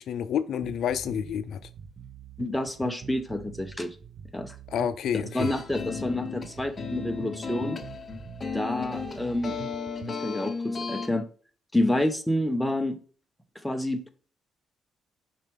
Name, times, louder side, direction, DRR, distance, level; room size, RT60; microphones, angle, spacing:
voice 1, 0.0-1.6 4.7-5.5, left 8 dB, 70° left, 0.5 m, -29 dB
sound 1, 0.6-10.2, right 7 dB, 50° right, 0.6 m, -44 dB
voice 2, 2.4-3.9 4.3-4.6 5.1-7.8 8.5-9.6 10.1-11.3 11.7-13.0 13.6-14.1, left 1 dB, 5° left, 0.9 m, -28 dB
sound 2, 5.3-11.1, left 5 dB, 35° left, 1.1 m, -35 dB
6.5 x 4.4 x 3.4 m
cardioid pair, 90°, 0 cm